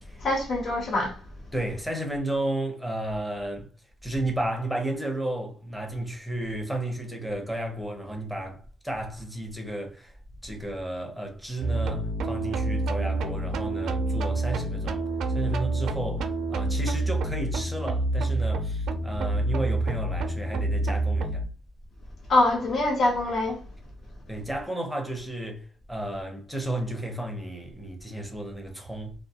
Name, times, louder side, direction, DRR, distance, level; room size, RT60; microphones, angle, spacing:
voice 1, 0.2-1.2 22.3-23.6, left 2 dB, 50° left, 0.8 m, -24 dB
voice 2, 1.5-3.7 4.0-10.1 10.4-21.4 24.3-29.1, right 1 dB, ahead, 0.6 m, -33 dB
sound 1, 11.6-21.4, right 2 dB, 75° right, 0.4 m, -28 dB
2.5 x 2.2 x 2.7 m
cardioid pair, 135°, 0 cm